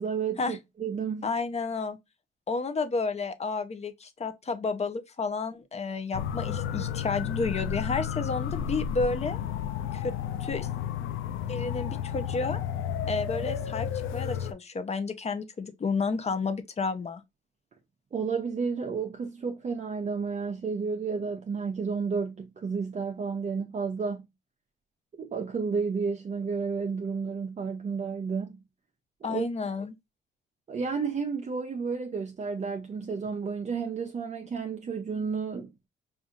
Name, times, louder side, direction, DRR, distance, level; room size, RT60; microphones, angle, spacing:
voice 1, 0.0-1.3 18.1-24.3 25.1-28.6 29.3-29.5 30.7-35.7, right 5 dB, 35° right, 0.7 m, -31 dB
voice 2, 1.2-2.0 2.5-9.4 9.9-10.1 10.4-10.7 11.5-12.6 13.1-13.9 14.1-17.2 29.2-29.9, left 4 dB, 35° left, 0.7 m, -31 dB
sound 1, 6.1-14.5, left 9 dB, 85° left, 0.5 m, -32 dB
4.9 x 2.5 x 2.5 m
cardioid pair, 90°, 20 cm